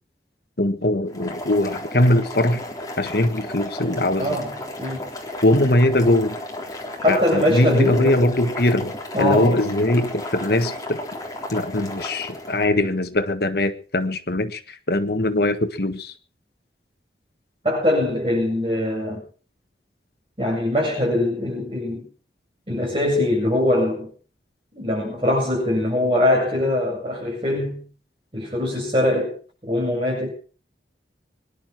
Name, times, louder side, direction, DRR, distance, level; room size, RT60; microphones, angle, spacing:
voice 1, 0.6-2.6 3.0-4.4 5.4-6.4 7.1-11.0 11.5-16.1, left 1 dB, 60° left, 1.5 m, -21 dB
Boiling, 1.1-12.6, left 1 dB, 20° left, 3.7 m, -34 dB
voice 2, 4.2-5.1 7.0-8.3 9.1-9.6 17.6-19.2 20.4-22.1 22.7-24.1 24.7-27.8 28.3-29.4 29.7-30.3, left 1 dB, 30° right, 8.0 m, -22 dB
24.5 x 11.0 x 4.6 m
head